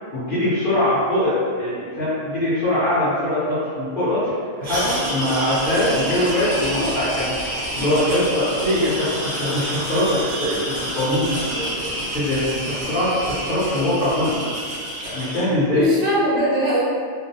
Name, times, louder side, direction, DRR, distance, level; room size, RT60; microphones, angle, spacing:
voice 1, 0.1-4.2 4.6-14.4 15.0-15.9, left 1 dB, 50° left, -12 dB, 0.7 m, -22 dB
sound 1, 4.6-15.4, equal, 45° right, 0.9 m, -28 dB
voice 2, 15.7-16.8, equal, 80° right, -8 dB, 0.4 m, -21 dB
2.5 x 2.0 x 2.7 m, 2.1 s
omnidirectional pair, 1.5 m